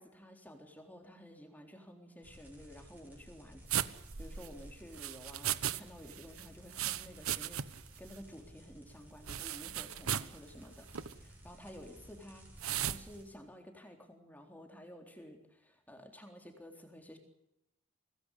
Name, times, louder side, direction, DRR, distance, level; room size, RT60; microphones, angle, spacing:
voice 1, 0.0-10.9 11.2-12.5 12.8-17.2, equal, 10° left, 4 dB, 3.8 m, -52 dB
sound 1, 2.2-13.2, equal, 10° right, 7.3 m, -56 dB
sound 2, 3.7-5.8 6.1-7.9 8.1-8.2 9.3-10.4 10.9-11.1 12.6-13.0, right 10 dB, 85° right, 1.1 m, -36 dB
25.0 x 18.5 x 8.4 m, 0.86 s
head